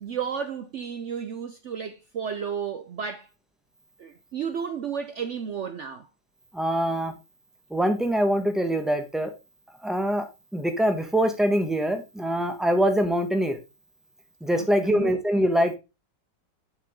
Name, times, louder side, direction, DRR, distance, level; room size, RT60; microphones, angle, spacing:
voice 1, 0.0-3.3 4.0-6.1 14.9-15.1, right 7 dB, 75° right, 0.6 m, -32 dB
voice 2, 6.5-7.1 7.7-9.3 9.8-10.2 10.5-13.6 14.4-15.8, equal, ahead, 1.1 m, -24 dB
7.6 x 6.1 x 3.6 m
omnidirectional pair, 2.0 m